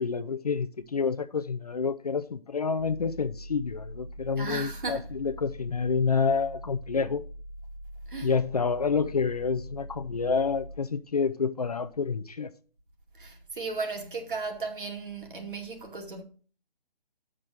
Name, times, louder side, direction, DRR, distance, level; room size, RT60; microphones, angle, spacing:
voice 1, 0.0-7.2 8.2-12.5, left 5 dB, 40° left, 0.5 m, -28 dB
sound 1, 2.8-10.8, equal, 35° right, 1.0 m, -43 dB
voice 2, 4.4-5.1 8.1-8.3 13.2-16.2, right 4 dB, 60° right, 2.3 m, -35 dB
6.4 x 6.1 x 6.3 m
figure-of-eight pair, 160°, 29 cm